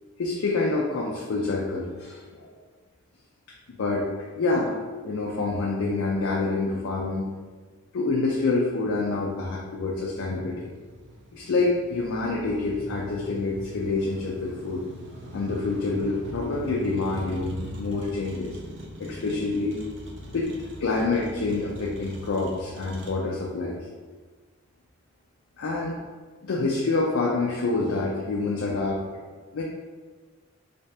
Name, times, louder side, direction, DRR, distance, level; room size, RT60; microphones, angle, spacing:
voice 1, 0.2-2.5 3.8-4.1 4.4-4.8 5.0-7.3 7.9-10.7 11.3-14.8 15.3-18.6 19.0-19.8 20.3-20.5 20.8-23.8 25.6-25.9 26.4-29.0 29.5-29.6, left 3 dB, 80° left, -2 dB, 0.4 m, -27 dB
Motor vehicle (road), 9.1-23.1, equal, 60° right, 0.6 m, -41 dB
3.3 x 3.2 x 2.8 m, 1.4 s
head